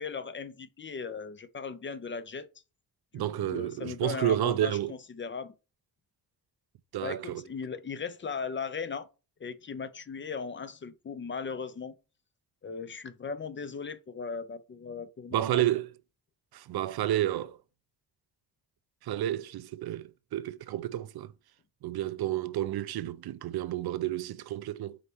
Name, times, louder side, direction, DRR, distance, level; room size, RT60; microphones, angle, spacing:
voice 1, 0.0-2.5 3.1-5.5 7.0-9.1 9.4-11.9 12.6-15.6, left 5 dB, 30° left, 0.5 m, -38 dB
voice 2, 3.1-4.9 6.9-7.4 15.3-15.9 16.5-17.6 19.0-21.3 21.8-25.0, right 13 dB, 75° right, 0.5 m, -30 dB
5.0 x 4.1 x 4.5 m
wide cardioid pair, 160°, 38 cm